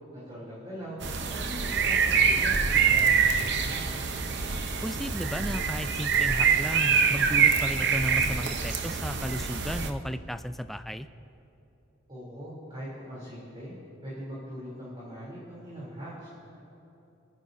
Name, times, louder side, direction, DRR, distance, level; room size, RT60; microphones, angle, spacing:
voice 1, 0.1-1.0 1.3-4.0 12.1-13.7 14.0-16.6, equal, 30° right, -8 dB, 3.2 m, -41 dB
sound 1, 1.0-9.9, right 6 dB, 60° right, 0.8 m, -25 dB
voice 2, 4.8-11.1, equal, ahead, 10 dB, 0.3 m, -34 dB
28.5 x 9.8 x 2.7 m, 2.9 s
head